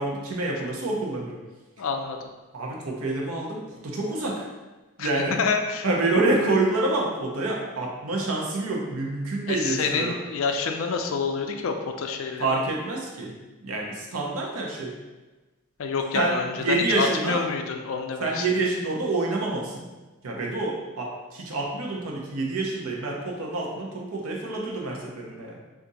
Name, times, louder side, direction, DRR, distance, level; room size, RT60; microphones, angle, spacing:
voice 1, 0.0-1.4 2.5-4.5 5.0-5.4 5.8-10.2 12.4-13.3 13.6-15.0 16.1-17.4 18.2-19.9 20.2-25.6, right 2 dB, 85° right, -1 dB, 0.7 m, -27 dB
voice 2, 1.8-2.3 5.0-5.1 5.4-5.8 9.5-12.5 15.8-18.5, left 5 dB, 65° left, 5 dB, 0.4 m, -28 dB
2.7 x 2.5 x 4.0 m, 1.2 s
head